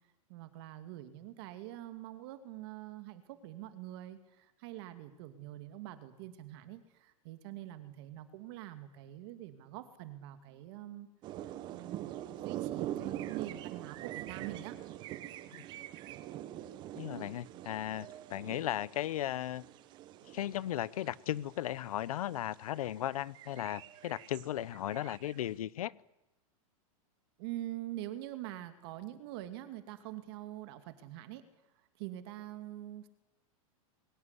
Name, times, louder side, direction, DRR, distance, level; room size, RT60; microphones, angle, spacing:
voice 1, 0.3-11.1 11.4-14.8 27.4-31.5 32.0-33.1, right 14 dB, 45° right, 9 dB, 2.5 m, -45 dB
sound 1, 11.2-21.7 22.2-22.4 22.8-25.4, right 13 dB, 25° right, 0.8 m, -43 dB
voice 2, 17.0-19.6 20.3-25.9, left 12 dB, 85° left, 21 dB, 0.9 m, -36 dB
22.5 x 17.5 x 9.9 m, 0.94 s
supercardioid pair, 165°, 18 cm